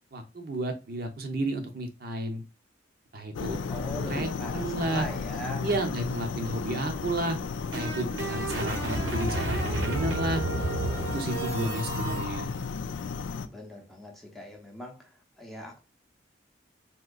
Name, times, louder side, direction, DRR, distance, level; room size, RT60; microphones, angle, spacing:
voice 1, 0.1-2.4 3.1-3.6 4.1-5.1 5.6-7.4 7.7-10.4 11.1-12.5, right 1 dB, 50° right, 0.6 m, -32 dB
sound 1, 3.3-13.5, left 5 dB, 75° left, 0.4 m, -34 dB
voice 2, 3.7-5.7 13.4-15.1 15.4-15.8, equal, ahead, 0.6 m, -40 dB
sound 2, 7.3-12.3, right 2 dB, 80° right, 1.0 m, -32 dB
3.6 x 2.9 x 2.3 m
head